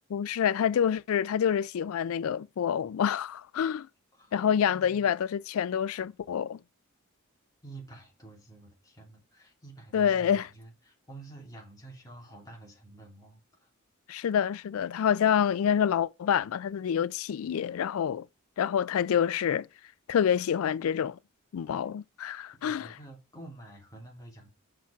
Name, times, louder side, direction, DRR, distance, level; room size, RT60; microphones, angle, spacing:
voice 1, 0.1-3.9 4.3-6.6 9.9-10.5 14.1-18.3 18.6-19.7 20.1-21.2 21.5-22.9, left 8 dB, 70° left, 0.3 m, -27 dB
voice 2, 4.7-5.1 7.6-13.7 22.6-24.5, right 2 dB, 15° left, 2.8 m, -49 dB
5.9 x 4.9 x 5.0 m
head